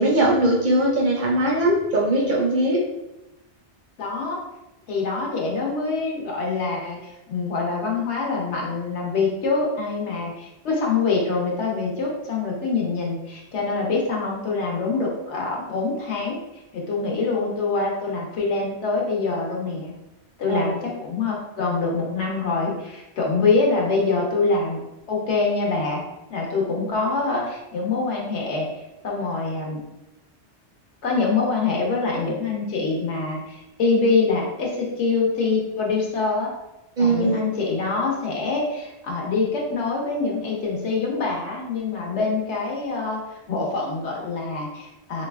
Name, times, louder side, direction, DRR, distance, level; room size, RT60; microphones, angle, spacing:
voice 1, 0.0-2.8 20.5-20.7 37.0-37.5, right 1 dB, 60° right, -2 dB, 0.5 m, -20 dB
voice 2, 4.0-4.4 4.9-16.4 16.7-19.9 20.4-24.8 25.1-26.0 26.3-29.8 31.0-36.5 37.0-45.3, left 4 dB, 75° left, -2 dB, 1.1 m, -25 dB
3.2 x 2.8 x 2.3 m, 0.94 s
omnidirectional pair, 1.2 m